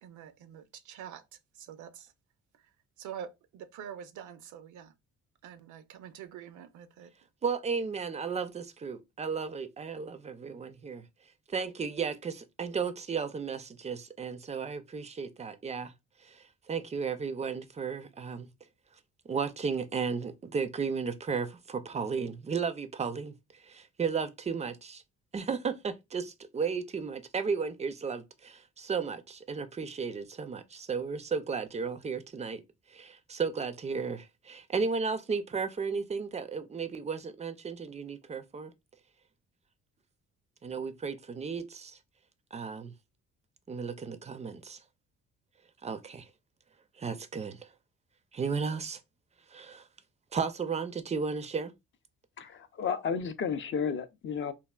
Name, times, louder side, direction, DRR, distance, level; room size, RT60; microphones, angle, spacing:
voice 1, 0.0-2.1 2.5-2.7 3.0-4.9 5.4-7.1, right 9 dB, 75° right, 0.5 m, -46 dB
voice 2, 7.4-11.1 11.5-15.9 16.2-18.5 19.3-25.0 25.3-32.6 32.9-38.7 40.6-42.0 42.5-42.9 43.7-44.8 45.8-46.3 47.0-47.7 48.3-49.0 49.5-49.9 50.3-51.7, right 5 dB, 25° right, 0.4 m, -34 dB
voice 3, 52.4-54.5, left 6 dB, 40° left, 0.4 m, -32 dB
3.3 x 2.3 x 2.2 m
cardioid pair, 90°, 30 cm